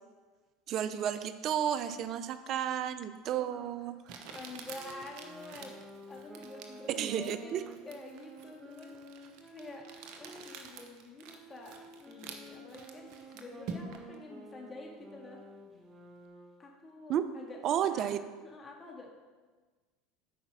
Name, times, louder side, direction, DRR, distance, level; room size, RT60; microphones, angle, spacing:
voice 1, 0.7-4.0 6.9-7.6 17.1-17.3 17.6-18.2, right 10 dB, 50° right, 12 dB, 0.6 m, -32 dB
Crumpling crinkling, 3.2-3.3 4.1-14.2, right 5 dB, 65° right, 1.1 m, -48 dB
voice 2, 3.4-3.7 4.3-5.7 6.1-9.0 9.5-9.9 10.2-15.4 16.6-18.1 18.4-19.1, left 3 dB, 25° left, 0 dB, 2.0 m, -48 dB
Wind instrument woodwind instrument, 4.7-10.5 11.2-16.7, right 2 dB, 15° right, 1.5 m, -51 dB
8.7 x 5.3 x 6.3 m, 1.3 s
supercardioid pair, 95°, 0 cm